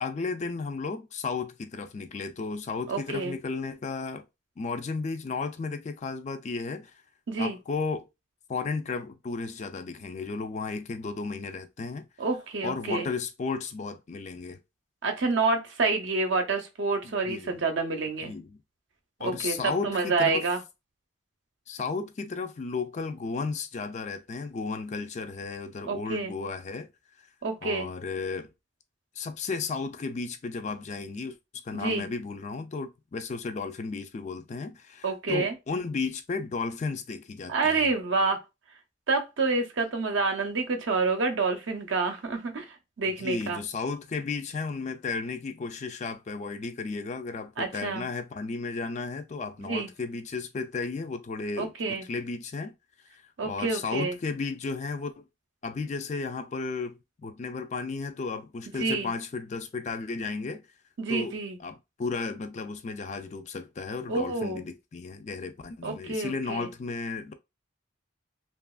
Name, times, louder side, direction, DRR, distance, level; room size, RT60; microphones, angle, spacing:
voice 1, 0.0-4.2 4.6-7.0 7.4-8.1 8.5-12.1 12.6-14.6 17.0-17.6 18.2-18.6 19.2-20.5 21.7-26.9 27.6-28.5 29.2-37.9 43.2-52.7 53.1-55.2 55.6-60.6 61.1-67.3, left 4 dB, 35° left, 0.3 m, -34 dB
voice 2, 2.9-3.4 7.3-7.6 12.2-13.1 15.0-18.3 19.2-20.6 25.9-26.3 27.4-27.9 31.7-32.1 35.0-35.5 37.5-38.4 39.1-42.6 43.0-43.6 47.6-48.0 49.6-49.9 51.6-52.1 53.4-54.2 58.8-59.1 61.0-61.6 64.1-64.6 65.8-66.7, right 3 dB, 65° right, 0.6 m, -28 dB
2.9 x 2.4 x 2.3 m
head